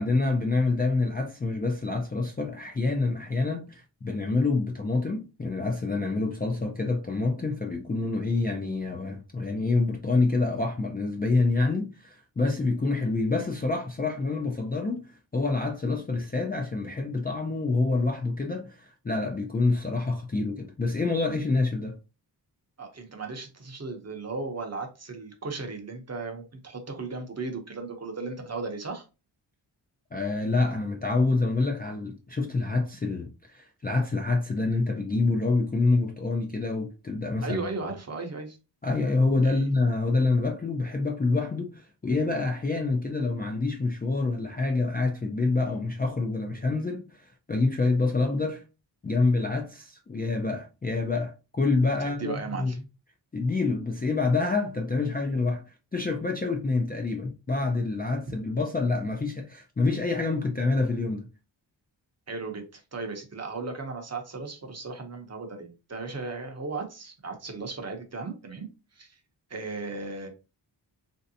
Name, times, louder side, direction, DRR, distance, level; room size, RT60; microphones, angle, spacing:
voice 1, 0.0-22.0 30.1-37.6 38.8-48.6 49.0-52.7 53.3-55.6 55.9-61.3, left 3 dB, 20° left, 0.3 m, -27 dB
voice 2, 22.8-29.0 37.4-38.6 39.4-39.6 52.0-52.8 62.3-69.1 69.5-70.3, right 3 dB, 35° right, 0.7 m, -36 dB
3.1 x 2.7 x 2.6 m
wide cardioid pair, 140°, 45 cm